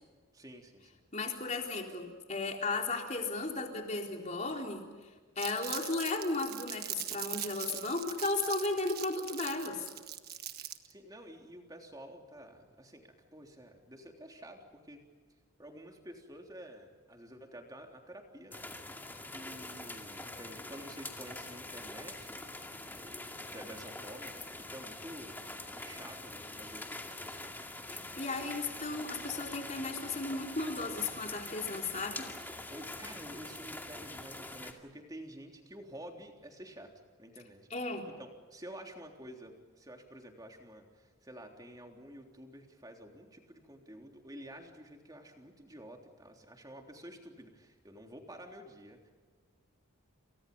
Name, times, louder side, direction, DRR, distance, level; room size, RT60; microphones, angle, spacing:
voice 1, 0.3-0.9 10.6-15.0 15.6-18.6 19.3-27.6 32.7-36.9 37.2-49.1, right 1 dB, 15° right, 2 dB, 3.6 m, -50 dB
voice 2, 1.1-4.9 5.4-9.9 27.9-32.2 37.7-38.1, left 3 dB, 35° left, 2 dB, 3.9 m, -35 dB
Crumpling crinkling, 5.4-10.9, right 12 dB, 45° right, 1.5 m, -41 dB
sound 1, 18.5-34.7, left 2 dB, 10° left, 2.3 m, -44 dB
29.5 x 29.0 x 5.5 m, 1.5 s
head